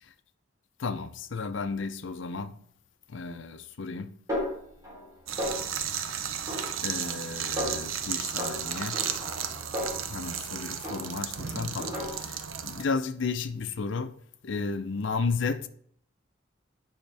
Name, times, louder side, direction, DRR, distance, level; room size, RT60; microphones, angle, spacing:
voice 1, 0.8-2.6 3.1-4.1 6.0-6.4 6.8-9.1 10.1-15.7, left 4 dB, 70° left, 0.6 m, -33 dB
Snare drum, 4.3-5.1 5.4-6.0 6.5-7.3 7.6-8.0 8.4-10.5 10.8-11.4 11.8-12.5, left 1 dB, 15° right, 3.6 m, -35 dB
sound 1, 5.3-12.8, right 8 dB, 85° right, 0.7 m, -34 dB
9.3 x 5.6 x 3.4 m
head